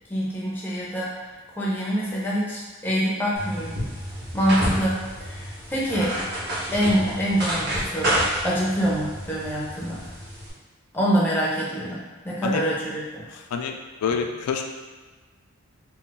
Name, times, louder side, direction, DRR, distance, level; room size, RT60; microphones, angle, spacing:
voice 1, 0.1-1.3 1.6-3.8 4.3-6.1 6.7-10.0 10.9-13.3, equal, 10° left, -6 dB, 0.5 m, -25 dB
sound 1, 3.4-10.5, right 1 dB, 45° right, 0.8 m, -29 dB
voice 2, 14.0-14.8, left 6 dB, 90° left, 9 dB, 0.3 m, -26 dB
2.4 x 2.1 x 3.8 m, 1.3 s
head